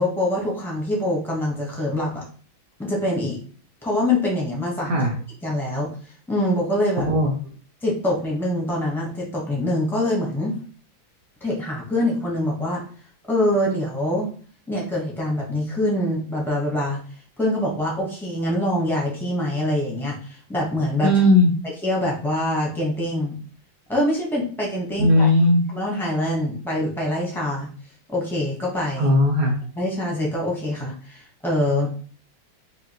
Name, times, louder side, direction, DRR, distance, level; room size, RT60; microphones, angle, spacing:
voice 1, 0.0-2.2 2.8-3.4 3.8-5.0 5.4-5.9 6.3-7.1 7.8-10.6 11.4-12.8 13.3-14.3 14.7-17.0 17.4-21.1 21.8-23.3 23.9-25.3 25.7-27.7 28.1-29.1 29.8-31.9, left 1 dB, 5° left, -3 dB, 0.3 m, -24 dB
voice 2, 21.0-21.5 25.0-25.6 29.0-29.6, left 1 dB, 70° right, 0 dB, 0.9 m, -17 dB
4.9 x 2.5 x 2.9 m, 0.43 s
omnidirectional pair, 2.2 m